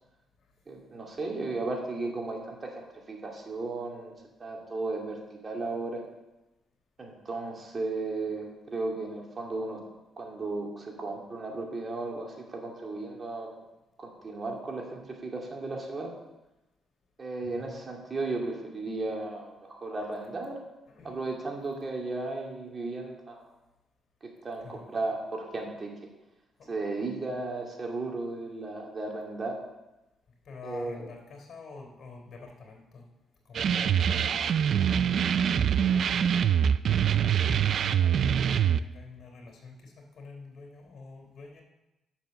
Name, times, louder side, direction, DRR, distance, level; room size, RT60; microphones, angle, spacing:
voice 1, 0.7-4.1 4.4-6.0 7.0-9.8 10.2-13.6 14.0-16.1 17.2-20.6 21.0-23.5 24.2-25.9 26.7-29.6 30.6-31.1, right 3 dB, 35° right, 0 dB, 2.5 m, -35 dB
voice 2, 17.4-17.8 20.9-21.2 24.6-25.0 26.6-26.7 30.5-33.0 33.5-36.4 36.9-41.6, left 4 dB, 55° left, 2 dB, 3.7 m, -48 dB
sound 1, 33.5-38.8, right 8 dB, 60° right, 0.4 m, -24 dB
9.2 x 7.3 x 6.5 m, 0.98 s
cardioid pair, 90°, 0 cm